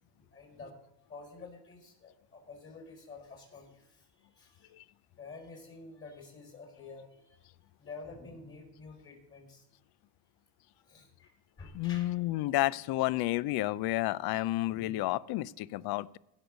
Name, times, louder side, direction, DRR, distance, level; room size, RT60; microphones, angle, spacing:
voice 1, 0.3-0.7 1.1-4.7 5.1-7.4 7.8-9.7 10.9-11.3 11.6-12.5, left 3 dB, 25° left, 3 dB, 4.9 m, -49 dB
voice 2, 11.7-16.2, left 17 dB, 50° left, 21 dB, 0.5 m, -31 dB
17.0 x 6.4 x 5.1 m, 0.82 s
cardioid pair, 120°, 49 cm